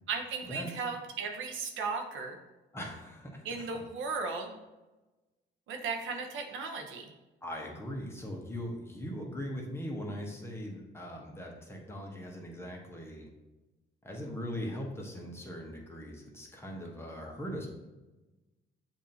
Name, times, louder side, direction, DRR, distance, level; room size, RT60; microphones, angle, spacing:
voice 1, 0.1-2.4 3.4-4.5 5.7-7.1, right 4 dB, 80° right, 4 dB, 0.7 m, -36 dB
voice 2, 2.7-3.4 7.4-13.3 14.0-17.7, equal, 10° left, -1 dB, 1.0 m, -40 dB
7.1 x 2.6 x 2.8 m, 1.1 s
cardioid pair, 90°, 20 cm